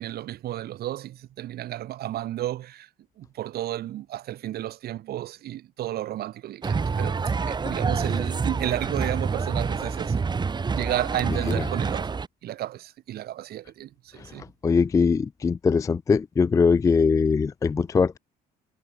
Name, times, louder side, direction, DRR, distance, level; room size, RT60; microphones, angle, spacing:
voice 1, 0.0-2.9 3.2-10.2 10.7-14.4, right 13 dB, 70° right, 3.3 m, -33 dB
sound 1, 6.6-12.3, right 5 dB, 25° right, 1.7 m, -27 dB
voice 2, 14.6-18.2, left 5 dB, 20° left, 0.3 m, -21 dB
cardioid pair, 110°, 17 cm